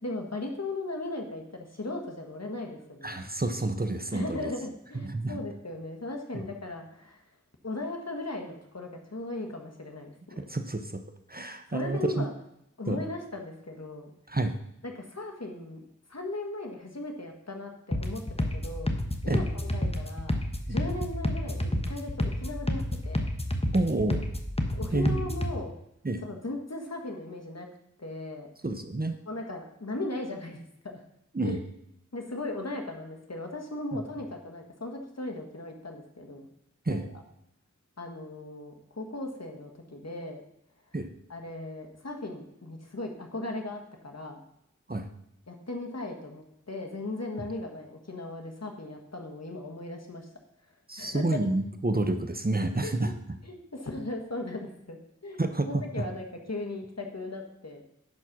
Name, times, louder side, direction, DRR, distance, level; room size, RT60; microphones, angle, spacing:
voice 1, 0.0-3.2 4.1-7.2 7.6-10.4 11.7-12.3 12.8-14.1 14.8-15.8 16.1-18.9 19.2-20.4 20.7-23.2 24.7-25.8 26.2-27.7 28.0-28.5 29.3-31.0 31.4-31.6 32.1-36.5 36.9-37.0 38.0-40.4 41.3-44.4 45.5-50.3 51.0-51.2 52.8-53.1 53.4-57.8, left 2 dB, 55° left, 3 dB, 1.6 m, -37 dB
voice 2, 3.0-4.5 4.9-5.4 6.3-6.4 10.4-11.0 11.3-12.3 12.9-13.0 14.3-14.5 19.3-19.4 20.7-20.8 23.7-24.3 24.9-25.3 26.0-26.2 28.6-29.2 31.3-31.6 36.9-37.0 40.9-41.1 44.9-45.1 50.9-53.1 55.4-56.0, right 2 dB, 30° right, 7 dB, 0.9 m, -29 dB
sound 1, 17.9-25.5, left 1 dB, 20° left, 1.1 m, -30 dB
10.5 x 4.3 x 6.2 m, 0.80 s
wide cardioid pair, 45°, 31 cm